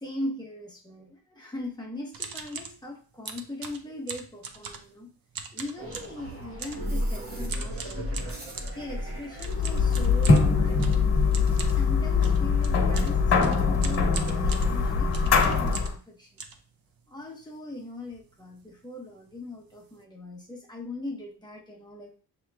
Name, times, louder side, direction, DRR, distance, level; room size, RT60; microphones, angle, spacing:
voice 1, 0.0-5.1 5.5-8.4 8.7-10.9 11.6-16.3 17.1-22.2, left 1 dB, 10° left, -2 dB, 1.0 m, -40 dB
sound 1, 2.1-2.8 3.3-5.0 5.3-6.2 6.6-6.9 7.5-8.8 9.4-16.1 16.4-17.2 17.7-17.8 18.0-18.3 18.5-18.7 19.3-19.4 19.7-20.0, right 5 dB, 60° right, 0.7 m, -40 dB
sound 2, 5.8-11.1, equal, 35° right, 1.1 m, -35 dB
sound 3, 9.4-15.9, left 4 dB, 80° left, 1.2 m, -22 dB
7.2 x 3.0 x 2.2 m, 0.38 s
wide cardioid pair, 135°, 39 cm